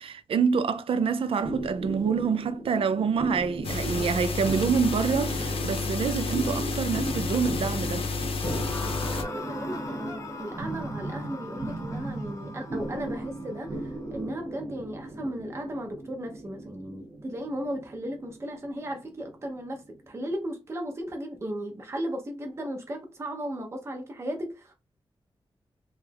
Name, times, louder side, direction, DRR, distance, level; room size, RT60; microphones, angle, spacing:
voice 1, 0.0-8.1, right 6 dB, 70° right, 0.4 m, -26 dB
sound 1, 1.4-20.2, right 2 dB, 50° right, 1.4 m, -37 dB
sound 2, 3.6-9.2, left 4 dB, 75° left, 0.6 m, -30 dB
sound 3, 8.4-15.5, left 3 dB, 35° left, 0.6 m, -42 dB
voice 2, 9.1-24.7, right 1 dB, 30° right, 0.7 m, -36 dB
3.1 x 2.3 x 3.3 m
wide cardioid pair, 145°, 10 cm